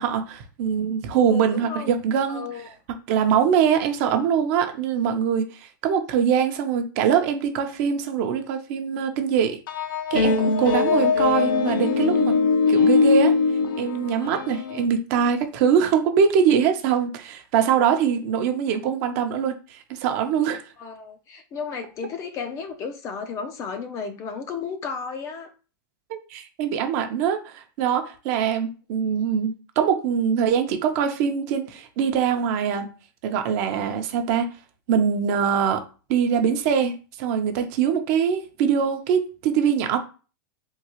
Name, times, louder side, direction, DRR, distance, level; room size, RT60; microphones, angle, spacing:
voice 1, 0.0-2.4 3.1-9.6 10.1-12.3 12.7-13.4 13.8-20.6 26.1-32.9 33.2-34.5 34.9-35.8 36.1-36.9 37.2-40.0, right 7 dB, 45° right, 0.6 m, -23 dB
voice 2, 1.3-2.0 2.3-2.7 20.8-25.5, left 5 dB, 25° left, 0.4 m, -33 dB
sound 1, 9.7-14.8, left 5 dB, 65° left, 0.6 m, -21 dB
3.7 x 2.3 x 3.0 m
supercardioid pair, 145°, 12 cm